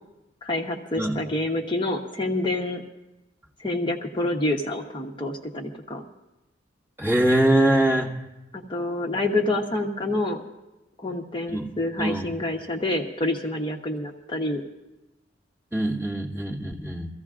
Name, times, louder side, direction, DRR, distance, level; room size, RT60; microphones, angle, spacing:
voice 1, 0.4-2.8 3.6-6.0 8.5-10.4 11.0-14.6, left 2 dB, 25° left, 2 dB, 0.8 m, -27 dB
voice 2, 7.0-8.1 11.5-11.7 12.0-12.3 15.7-17.1, right 1 dB, 10° right, -4 dB, 1.8 m, -22 dB
23.5 x 15.0 x 2.5 m, 1.0 s
head